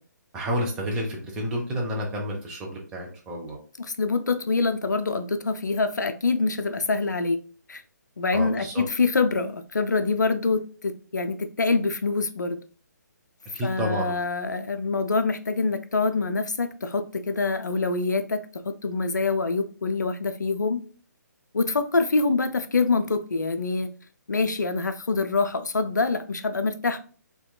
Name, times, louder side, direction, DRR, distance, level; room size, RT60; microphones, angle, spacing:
voice 1, 0.3-3.6 8.3-8.8 13.5-14.2, equal, 10° right, 0.4 m, -30 dB
voice 2, 3.8-7.4 7.7-7.8 8.2-12.6 13.6-20.8 21.5-23.9 24.3-27.0, left 3 dB, 70° left, 0.4 m, -25 dB
2.8 x 2.2 x 2.3 m
figure-of-eight pair, 140°, 10 cm